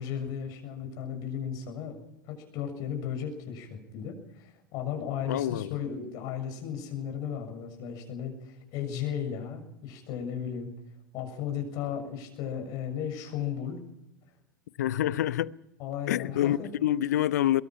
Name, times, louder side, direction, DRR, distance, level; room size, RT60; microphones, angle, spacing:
voice 1, 0.0-2.0 2.2-10.7 11.1-13.8 15.8-16.7, left 8 dB, 40° left, 7.0 m, -35 dB
voice 2, 5.3-5.7 14.8-15.5 16.1-17.6, left 12 dB, 55° left, 0.9 m, -27 dB
24.0 x 22.5 x 5.8 m
figure-of-eight pair, 90°, 10 cm